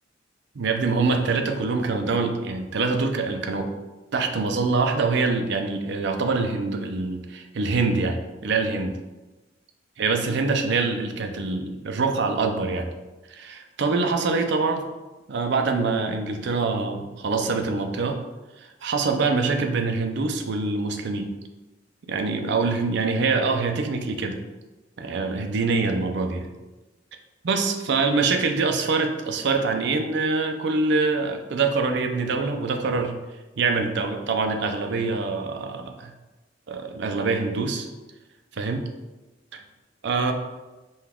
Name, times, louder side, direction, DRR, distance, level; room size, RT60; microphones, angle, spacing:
voice 1, 0.6-3.7 4.1-8.2 8.4-9.0 10.0-12.9 13.3-14.8 15.3-18.2 18.6-21.3 22.1-24.4 25.0-26.5 27.4-33.2 33.6-36.1 36.7-37.9 38.6-38.8 39.5-39.6 40.0-40.3, right 4 dB, 65° right, 5 dB, 0.5 m, -24 dB
5.4 x 2.3 x 3.5 m, 1.1 s
head